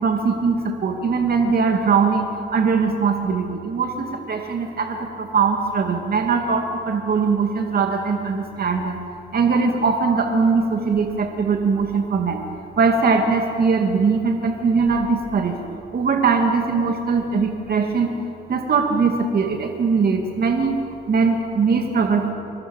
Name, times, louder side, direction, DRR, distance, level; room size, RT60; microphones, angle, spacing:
voice 1, 0.0-9.0 9.3-12.4 12.8-15.6 15.9-18.2 18.5-20.8 21.1-22.3, right 5 dB, 50° right, 3 dB, 2.4 m, -21 dB
24.5 x 21.5 x 7.2 m, 2.7 s
cardioid pair, 90°, 20 cm